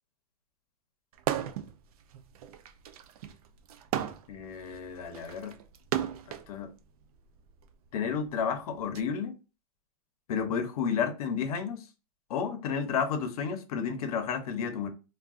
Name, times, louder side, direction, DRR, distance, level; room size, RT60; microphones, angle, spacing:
sound 1, 1.2-1.7 2.1-6.5 7.4-9.0, right 11 dB, 70° right, 0.4 m, -35 dB
voice 1, 4.3-5.5 6.5-6.7 7.9-9.4 10.3-11.8 12.3-14.9, left 6 dB, 70° left, 0.7 m, -31 dB
3.6 x 2.3 x 2.4 m
supercardioid pair, 165°, 20 cm